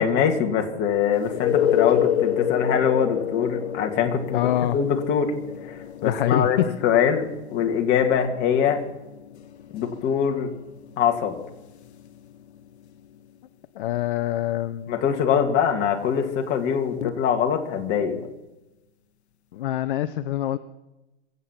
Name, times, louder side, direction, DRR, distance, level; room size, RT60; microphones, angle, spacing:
voice 1, 0.0-5.3 5.6-8.8 9.7-10.5 11.0-11.4 14.9-18.2, left 7 dB, 30° left, 4 dB, 2.0 m, -23 dB
sound 1, 1.2-12.7 17.0-17.1, left 10 dB, 65° left, 1.1 m, -29 dB
voice 2, 4.3-4.8 6.0-6.5 13.8-14.9 19.5-20.6, left 12 dB, 50° left, 11 dB, 0.7 m, -25 dB
23.0 x 8.3 x 5.9 m, 1.0 s
hypercardioid pair, 130°, 35 cm